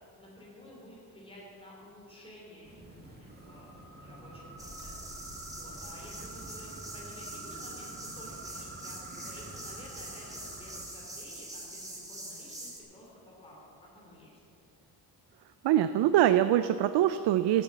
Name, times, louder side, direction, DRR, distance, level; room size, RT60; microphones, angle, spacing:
voice 1, 0.2-5.0 5.5-13.6 13.9-14.4, left 1 dB, 15° left, -4 dB, 2.9 m, -52 dB
sound 1, 2.6-10.9, right 2 dB, 25° right, 1.8 m, -47 dB
sound 2, 4.6-12.8, right 1 dB, 10° right, 1.5 m, -44 dB
voice 2, 15.6-17.6, right 12 dB, 75° right, 11 dB, 0.5 m, -24 dB
13.5 x 7.0 x 7.2 m, 2.7 s
wide cardioid pair, 160°, 41 cm